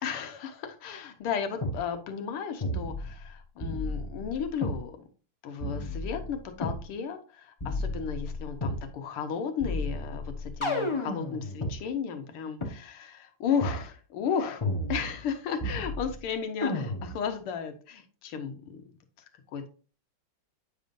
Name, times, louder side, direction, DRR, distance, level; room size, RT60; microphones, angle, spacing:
voice 1, 0.0-5.0 5.4-18.8 19.5-19.7, left 7 dB, 90° left, 6 dB, 1.9 m, -34 dB
sound 1, 1.6-1.8 2.6-3.3 3.6-4.8 5.6-6.8 7.6-8.8 9.6-11.8 12.6-12.7 13.6-13.8 14.6-15.3 15.6-16.2 16.6-17.2, left 1 dB, 25° left, 0.7 m, -32 dB
8.4 x 5.2 x 2.5 m, 0.37 s
omnidirectional pair, 2.4 m